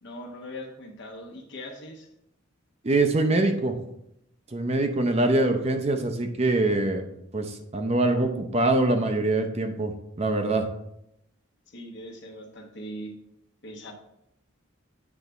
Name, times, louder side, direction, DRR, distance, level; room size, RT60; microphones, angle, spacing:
voice 1, 0.0-2.1 11.7-13.1 13.6-13.9, equal, 60° left, 1 dB, 1.1 m, -40 dB
voice 2, 2.8-3.8 4.5-7.0 7.3-10.7, right 2 dB, 30° right, 6 dB, 0.5 m, -24 dB
8.2 x 3.5 x 3.9 m, 0.79 s
head